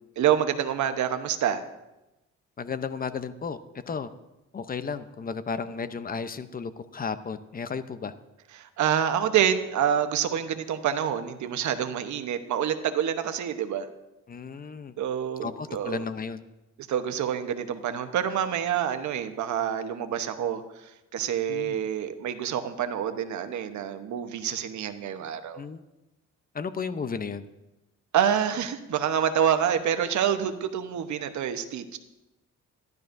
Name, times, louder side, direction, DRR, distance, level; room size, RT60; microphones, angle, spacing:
voice 1, 0.2-1.6 8.5-13.9 15.0-16.0 16.9-25.6 28.1-32.0, right 9 dB, 70° right, 8 dB, 1.0 m, -27 dB
voice 2, 2.6-3.6 3.9-4.1 4.5-8.1 14.3-14.9 15.4-16.4 21.5-21.8 25.6-25.8 26.5-27.4, left 5 dB, 30° left, 12 dB, 0.7 m, -33 dB
14.5 x 12.0 x 2.6 m, 0.98 s
cardioid pair, 90°, 30 cm